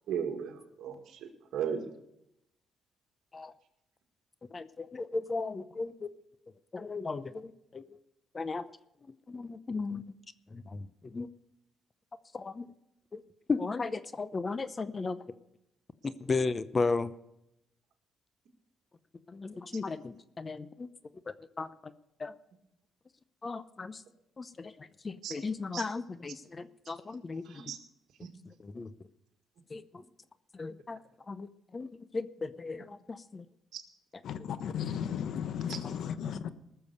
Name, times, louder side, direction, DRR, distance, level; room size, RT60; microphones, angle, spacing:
voice 1, 0.1-1.8 25.2-25.4 25.7-25.9 27.4-27.8 28.2-28.3 33.7-33.8 35.7-35.8, right 8 dB, 75° right, 1.9 m, -36 dB
voice 2, 4.5-6.1 6.7-7.8 8.3-8.6 9.3-10.1 10.5-11.3 12.3-12.7 13.1-13.2 13.5-15.2 16.0-17.1 19.3-20.9 21.3-21.9 22.2-22.3 23.4-24.0 24.4-27.6 28.5-28.9 29.7-30.0 30.5-31.0 31.3-33.4, left 4 dB, 30° left, 0.7 m, -36 dB
voice 3, 34.2-36.5, left 8 dB, 70° left, 0.9 m, -35 dB
19.5 x 6.9 x 6.7 m
cardioid pair, 90°, 0 cm